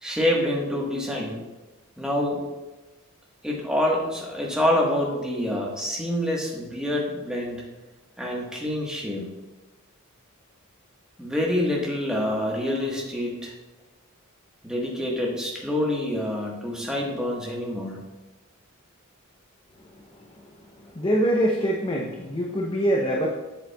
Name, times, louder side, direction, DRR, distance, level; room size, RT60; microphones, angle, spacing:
voice 1, 0.0-1.4 2.0-2.4 3.4-7.6 8.2-9.2 11.2-13.5 14.6-18.0, left 1 dB, 5° right, -3 dB, 1.2 m, -26 dB
voice 2, 20.8-23.3, right 1 dB, 20° left, -1 dB, 0.6 m, -24 dB
7.4 x 7.4 x 2.2 m, 1.1 s
head